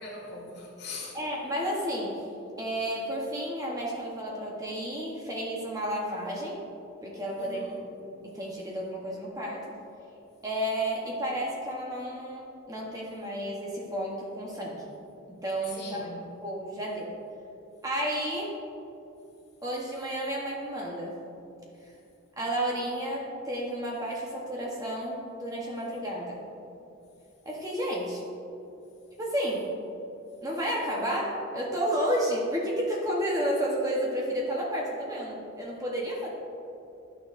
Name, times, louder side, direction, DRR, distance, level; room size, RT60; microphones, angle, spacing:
voice 1, 0.0-1.2 7.4-7.8 15.8-16.2, left 3 dB, 50° left, -2 dB, 1.6 m, -41 dB
voice 2, 1.1-2.3 2.6-6.6 7.0-7.6 7.9-9.7 10.4-14.8 15.3-16.1 16.4-17.1 17.8-18.5 19.6-21.1 22.4-26.4 27.4-28.2 29.2-29.7 30.4-36.3, equal, 15° right, -3 dB, 0.9 m, -31 dB
11.0 x 6.4 x 2.5 m, 2.7 s
head